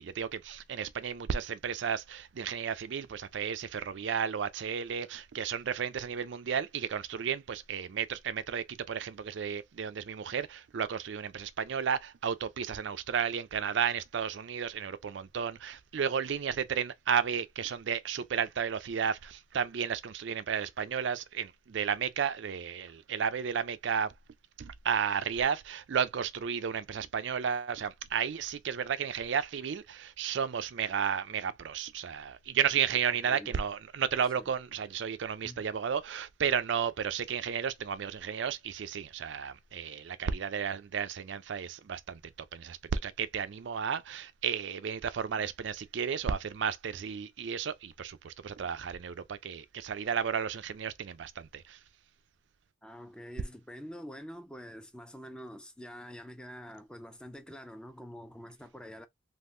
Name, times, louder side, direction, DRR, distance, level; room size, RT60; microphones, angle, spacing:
voice 1, 0.0-24.1 24.6-42.2 42.5-51.8, right 7 dB, 65° right, 0.4 m, -33 dB
voice 2, 33.1-33.6 34.3-34.5 35.4-35.7 52.8-59.1, equal, 5° left, 0.4 m, -46 dB
3.5 x 2.6 x 2.5 m
head